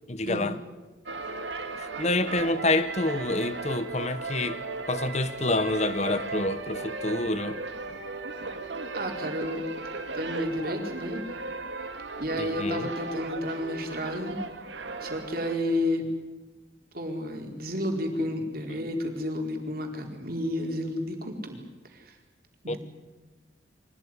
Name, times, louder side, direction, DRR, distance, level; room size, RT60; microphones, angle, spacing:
voice 1, 0.1-0.6 1.8-7.6 12.4-12.9 22.7-22.8, left 2 dB, 40° left, 1.3 m, -28 dB
sound 1, 1.1-15.6, right 3 dB, 80° right, 2.2 m, -36 dB
voice 2, 8.9-9.6 10.1-11.2 12.2-14.4 15.0-16.0 16.9-21.6 21.9-22.1 22.6-22.8, left 1 dB, 55° right, 4.3 m, -31 dB
24.5 x 18.0 x 9.9 m
head